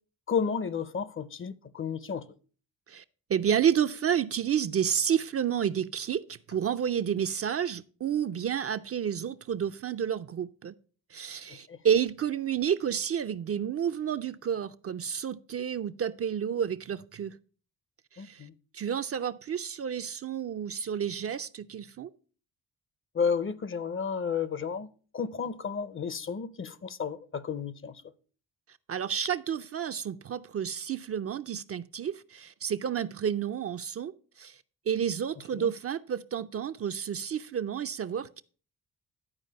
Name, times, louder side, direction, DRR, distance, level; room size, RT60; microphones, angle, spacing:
voice 1, 0.3-2.3 11.5-11.8 18.2-18.5 23.1-24.9 25.1-28.0 35.5-35.7, left 6 dB, 35° left, 0.6 m, -32 dB
voice 2, 3.3-10.7 11.1-17.4 18.1-18.5 18.7-22.1 28.9-34.6 34.9-38.4, right 8 dB, 40° right, 0.4 m, -30 dB
11.0 x 4.5 x 5.4 m
cardioid pair, 80°, 37 cm